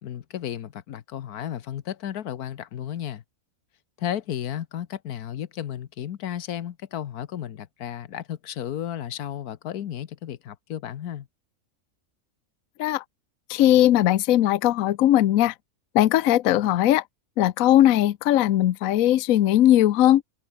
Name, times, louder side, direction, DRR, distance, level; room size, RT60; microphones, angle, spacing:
voice 1, 0.0-3.2 4.0-11.3, left 10 dB, 90° left, 1.5 m, -33 dB
voice 2, 13.5-15.5 15.9-17.0 17.4-20.2, left 13 dB, 70° left, 1.1 m, -19 dB
omnidirectional pair, 1.6 m